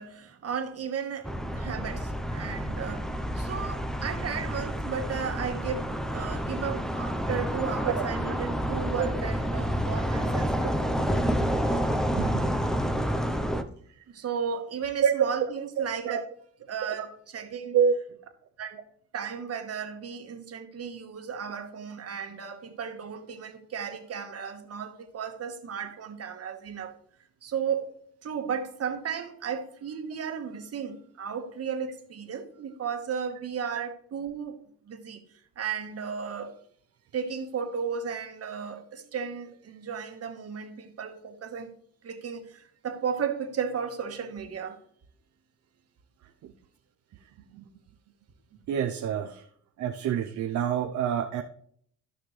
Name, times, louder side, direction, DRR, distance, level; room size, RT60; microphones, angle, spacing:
voice 1, 0.0-10.6 14.1-16.3 16.7-17.8 18.6-18.8 19.1-26.9 27.4-27.9 28.2-34.6 34.9-35.2 35.5-36.5 37.1-41.7 42.0-44.8, right 7 dB, 55° right, 1.6 m, -34 dB
sound 1, 1.2-13.6, equal, ahead, 0.7 m, -29 dB
voice 2, 10.6-11.1 12.2-12.5 15.0-15.1 16.0-16.2 16.8-17.0 17.7-18.0 46.4-46.5 47.5-47.7 48.7-49.4 49.8-51.4, right 8 dB, 70° right, 0.8 m, -27 dB
14.5 x 5.8 x 3.3 m
cardioid pair, 90°, 30 cm